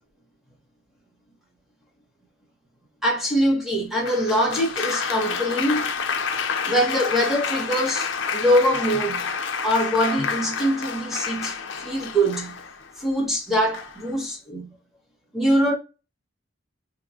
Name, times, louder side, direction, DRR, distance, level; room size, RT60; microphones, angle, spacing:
voice 1, 3.0-5.9 6.6-9.3 9.6-12.6 13.0-14.7 15.3-15.8, equal, ahead, 0.9 m, -23 dB
Applause, 4.0-12.9 13.7-14.1, left 5 dB, 70° left, 0.5 m, -29 dB
3.0 x 2.6 x 2.4 m
head